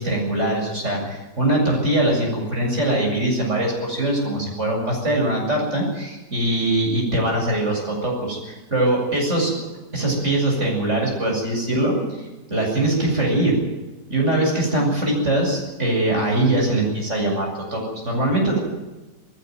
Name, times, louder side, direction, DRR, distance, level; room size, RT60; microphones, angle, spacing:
voice 1, 0.0-9.5 9.9-12.0 12.5-13.5 14.1-18.6, right 1 dB, 45° right, 0 dB, 8.1 m, -22 dB
20.5 x 16.5 x 9.5 m, 1.1 s
omnidirectional pair, 1.8 m